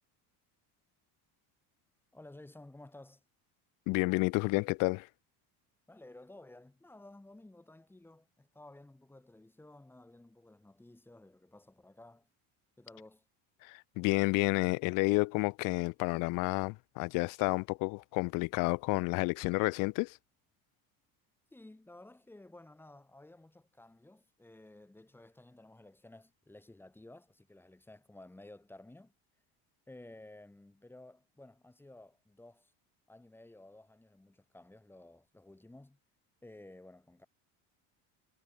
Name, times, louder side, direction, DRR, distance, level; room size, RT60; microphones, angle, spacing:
voice 1, 2.1-3.2 5.9-12.3 12.8-13.2 21.5-29.1 29.9-32.7 33.1-36.0 36.4-37.3, left 2 dB, 5° left, 3.8 m, -54 dB
voice 2, 3.9-5.1 13.6-20.2, left 26 dB, 55° left, 0.5 m, -30 dB
cardioid pair, 170°, 40 cm